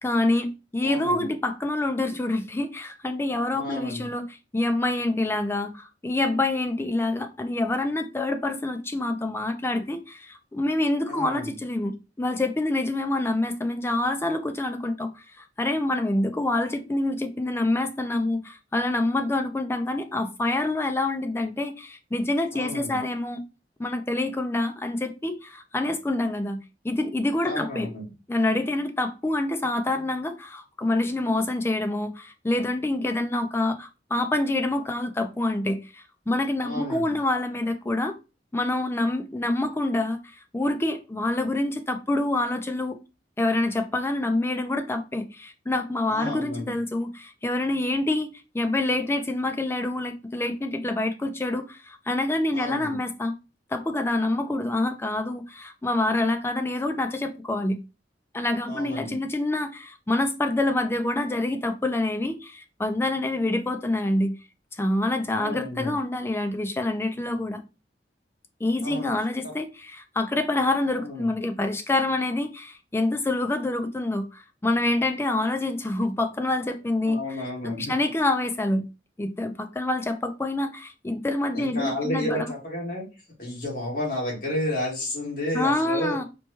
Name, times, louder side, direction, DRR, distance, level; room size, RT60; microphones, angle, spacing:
voice 1, 0.0-23.4 23.8-27.9 28.3-38.2 38.5-43.0 43.4-53.4 53.7-57.8 58.3-64.3 64.8-67.6 68.6-77.2 77.6-78.8 79.2-82.5 85.5-86.2, left 2 dB, 15° left, 0.3 m, -26 dB
voice 2, 0.8-1.3 3.5-4.0 11.1-11.5 22.5-23.0 27.4-28.1 36.6-37.1 46.1-46.7 52.5-53.0 58.7-59.1 65.4-65.9 68.8-69.1 71.0-71.3 77.1-77.9 81.5-83.0 83.4-86.2, left 1 dB, 55° left, 1.8 m, -31 dB
4.4 x 2.2 x 3.0 m
head